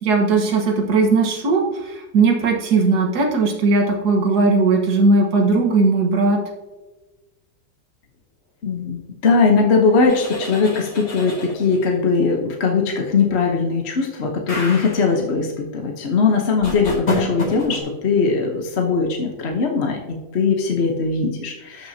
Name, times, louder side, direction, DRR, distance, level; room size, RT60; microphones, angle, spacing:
voice 1, 0.0-6.4, right 3 dB, 65° right, 2 dB, 1.8 m, -18 dB
voice 2, 8.6-21.9, left 4 dB, 45° left, 2 dB, 1.0 m, -20 dB
sound 1, 10.0-11.9 14.5-15.1 16.6-17.8, left 2 dB, 85° left, 4.1 m, -28 dB
13.5 x 6.0 x 2.8 m, 1.1 s
omnidirectional pair, 1.9 m